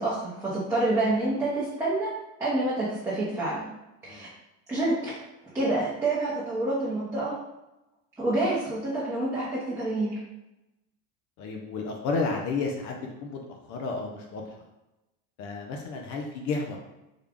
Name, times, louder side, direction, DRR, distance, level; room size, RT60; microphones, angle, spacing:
voice 1, 0.0-2.1 2.4-3.7 4.0-4.3 4.7-5.1 5.5-7.3 8.2-10.2, right 2 dB, 10° right, -10 dB, 0.8 m, -27 dB
voice 2, 11.4-13.4 13.7-14.4 15.4-16.8, left 4 dB, 55° left, 1 dB, 0.6 m, -31 dB
3.7 x 2.3 x 3.5 m, 0.95 s
supercardioid pair, 120°, 36 cm